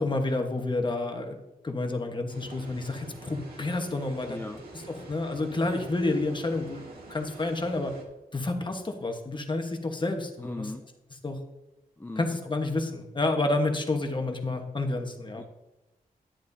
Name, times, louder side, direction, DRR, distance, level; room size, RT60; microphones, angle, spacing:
voice 1, 0.0-1.4 1.6-4.4 4.9-8.0 8.3-10.7 11.2-11.4 12.2-15.4, left 2 dB, 30° left, 5 dB, 1.2 m, -29 dB
sound 1, 2.3-8.0, right 3 dB, 85° right, 1.9 m, -46 dB
voice 2, 4.3-4.6 10.4-10.9 12.0-12.2 15.4-15.5, left 2 dB, 15° left, 4 dB, 0.4 m, -38 dB
10.5 x 9.6 x 2.7 m, 1.0 s
wide cardioid pair, 85°, 15 cm